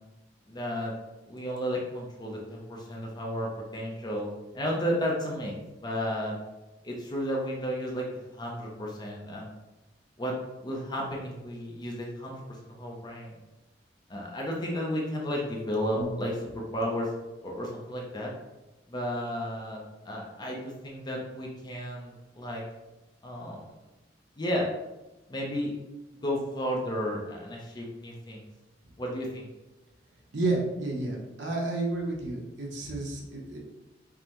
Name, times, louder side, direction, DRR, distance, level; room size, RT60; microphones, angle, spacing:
voice 1, 0.5-0.9 1.3-4.3 4.5-6.4 6.8-9.5 10.2-10.3 10.6-13.3 14.1-17.1 17.4-18.3 18.9-22.6 23.2-23.7 24.4-24.7 25.3-25.7 26.2-28.4 29.0-29.5, equal, 25° left, -2 dB, 0.6 m, -33 dB
voice 2, 30.3-33.6, right 2 dB, 70° right, -2 dB, 0.9 m, -31 dB
5.2 x 2.1 x 2.9 m, 1.0 s
head